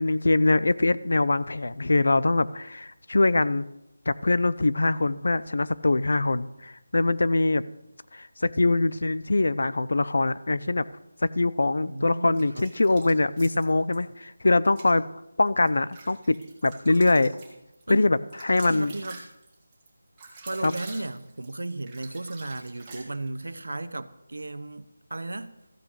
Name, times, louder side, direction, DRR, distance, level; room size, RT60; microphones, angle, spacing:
voice 1, 0.0-3.6 4.1-7.6 8.1-10.9 11.2-15.0 15.4-16.4 16.6-17.3 17.9-18.9 20.6-20.7, left 2 dB, 65° left, 0.5 m, -23 dB
voice 2, 11.8-12.7 17.9-18.1 18.7-19.2 20.5-25.5, right 2 dB, 85° right, 0.9 m, -35 dB
sound 1, 12.3-14.0 14.6-14.9 15.5-23.5, right 3 dB, 10° right, 1.6 m, -46 dB
14.0 x 6.1 x 6.4 m
figure-of-eight pair, 180°, 0 cm